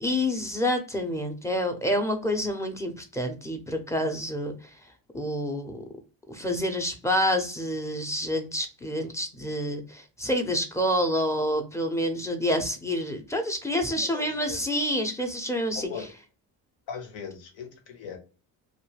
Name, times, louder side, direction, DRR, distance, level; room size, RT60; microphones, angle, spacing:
voice 1, 0.0-4.5 5.1-5.8 6.3-15.9, equal, 5° left, 0.6 m, -28 dB
voice 2, 13.9-14.6 15.7-16.1 16.9-18.2, left 7 dB, 65° left, 1.0 m, -39 dB
2.4 x 2.1 x 3.1 m
supercardioid pair, 75°, 47 cm